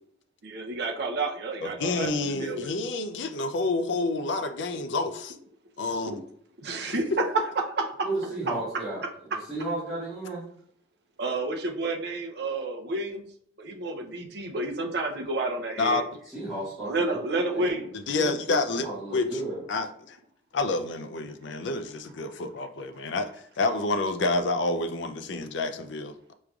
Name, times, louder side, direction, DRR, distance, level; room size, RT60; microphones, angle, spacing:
voice 1, 0.4-2.7 6.1-6.2 6.6-7.3 7.6-7.9 11.2-13.3 13.6-16.0 16.8-17.9, right 2 dB, 60° right, 2 dB, 0.6 m, -30 dB
voice 2, 1.6-5.4 5.8-6.2 15.8-16.0 17.9-18.9 19.1-19.4 19.7-20.2 20.5-26.3, left 3 dB, 70° left, 8 dB, 0.4 m, -28 dB
voice 3, 8.0-10.4 16.3-17.2 17.5-17.8 18.7-19.6, right 2 dB, ahead, -13 dB, 1.5 m, -33 dB
5.0 x 3.1 x 2.3 m, 0.62 s
head